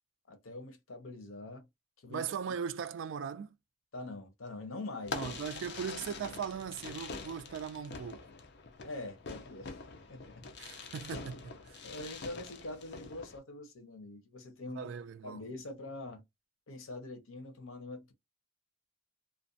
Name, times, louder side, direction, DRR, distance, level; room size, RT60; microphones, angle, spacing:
voice 1, 0.3-1.7 2.0-2.2 3.9-5.2 5.8-6.1 8.8-9.8 10.1-10.4 11.8-14.9 15.2-16.2 16.7-18.1, left 2 dB, 80° left, 0.8 m, -44 dB
voice 2, 2.1-3.5 5.1-8.2 10.6-11.9 14.7-15.4, right 7 dB, 65° right, 0.3 m, -39 dB
Fireworks, 5.0-13.4, left 4 dB, 55° left, 0.5 m, -45 dB
2.5 x 2.2 x 2.5 m
head